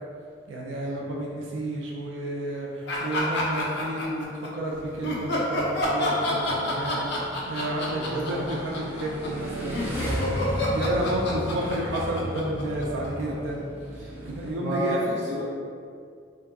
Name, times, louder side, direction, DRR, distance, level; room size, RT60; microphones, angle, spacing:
voice 1, 0.5-13.6 13.9-15.0, right 1 dB, 75° right, -2 dB, 0.3 m, -31 dB
sound 1, 2.9-4.5 5.0-13.3, left 1 dB, 60° left, 0.6 m, -29 dB
Motorcycle / Engine, 4.7-14.5, equal, 10° right, 0.4 m, -36 dB
voice 2, 7.9-8.5 13.3-13.4 14.0-14.1 14.4-15.4, left 1 dB, 35° right, -8 dB, 0.8 m, -32 dB
3.6 x 2.5 x 2.3 m, 2.3 s
head